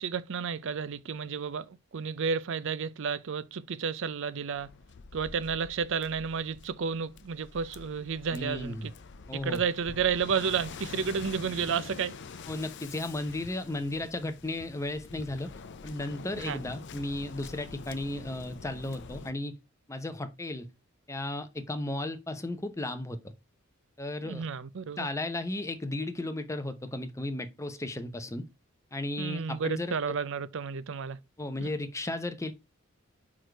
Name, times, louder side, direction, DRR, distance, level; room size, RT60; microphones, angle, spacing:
voice 1, 0.0-4.7 5.1-8.9 9.4-12.2 16.4-16.6 24.2-25.1 29.2-31.2 31.6-31.7, right 6 dB, 65° right, 0.5 m, -32 dB
Waves surf, 4.5-19.3, left 4 dB, 60° left, 0.6 m, -46 dB
voice 2, 8.3-8.9 9.3-9.6 12.5-15.5 15.8-19.5 19.9-20.7 21.1-23.3 24.0-24.5 25.0-28.5 28.9-30.2 31.4-32.5, left 2 dB, 15° left, 0.7 m, -35 dB
4.8 x 4.3 x 4.5 m
head